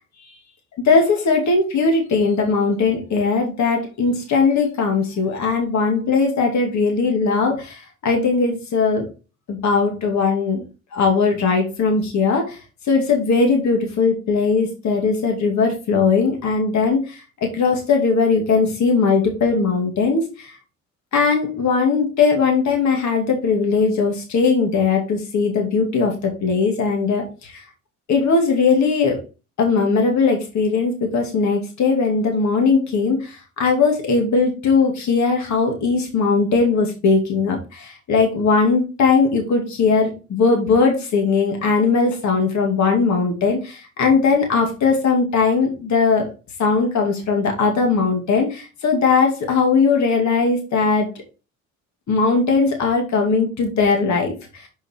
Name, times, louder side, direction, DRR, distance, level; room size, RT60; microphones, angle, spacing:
voice 1, 0.8-9.1 9.5-10.6 10.9-12.6 12.9-20.5 21.1-27.6 28.1-29.2 29.6-46.3 46.6-51.1 52.1-54.7, left 4 dB, 70° left, 3 dB, 2.4 m, -19 dB
6.8 x 4.9 x 4.6 m, 0.31 s
cardioid pair, 90°, 30 cm